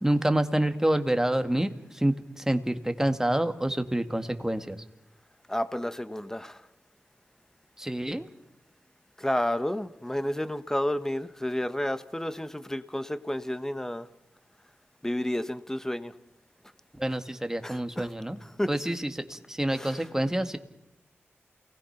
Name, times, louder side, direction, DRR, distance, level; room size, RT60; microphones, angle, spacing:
voice 1, 0.0-1.7 2.0-4.8 7.8-8.3 17.0-18.4 18.7-20.6, right 1 dB, 10° right, 8 dB, 2.0 m, -27 dB
voice 2, 5.5-6.7 9.2-14.1 15.0-16.1 17.1-17.2 17.6-18.1 18.4-19.1 19.7-20.3, left 1 dB, 10° left, 12 dB, 1.3 m, -31 dB
28.5 x 19.5 x 5.9 m, 0.87 s
cardioid pair, 45°, 5 cm